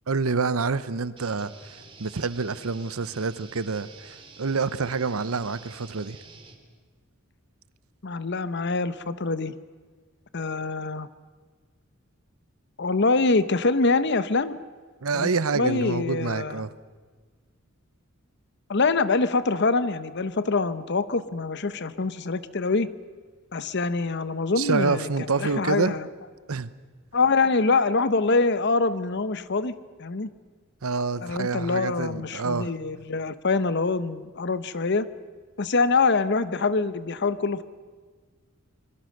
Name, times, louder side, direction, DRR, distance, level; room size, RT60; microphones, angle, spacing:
voice 1, 0.1-6.2 15.0-16.7 24.6-26.0 26.5-26.7 30.8-32.7, right 4 dB, 85° right, 0.8 m, -27 dB
sound 1, 1.2-6.5, right 4 dB, 25° right, 2.3 m, -48 dB
voice 2, 8.0-9.5 10.3-11.1 12.8-14.6 15.1-16.7 18.7-22.9 23.5-26.1 27.1-29.7 30.0-30.3 31.2-35.1 35.6-37.6, left 3 dB, 55° left, 0.8 m, -25 dB
25.0 x 22.5 x 6.5 m
head